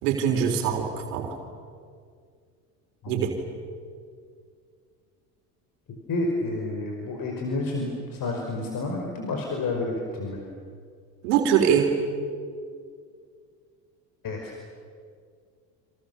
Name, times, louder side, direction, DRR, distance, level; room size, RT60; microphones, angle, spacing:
voice 1, 0.0-1.4 3.1-3.3 11.2-11.9, right 8 dB, 75° right, 3 dB, 4.0 m, -23 dB
voice 2, 6.1-10.4 14.2-14.5, left 2 dB, 45° left, 1 dB, 5.3 m, -30 dB
30.0 x 27.0 x 7.0 m, 2.2 s
hypercardioid pair, 80°, 47 cm